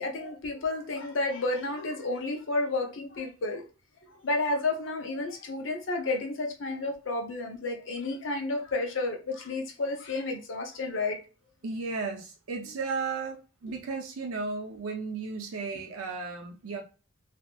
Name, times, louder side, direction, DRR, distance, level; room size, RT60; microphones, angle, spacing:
voice 1, 0.0-3.6 4.2-11.2, left 2 dB, 60° left, 0.6 m, -31 dB
voice 2, 11.6-16.8, right 4 dB, 85° right, 0.5 m, -34 dB
2.7 x 2.4 x 2.3 m
head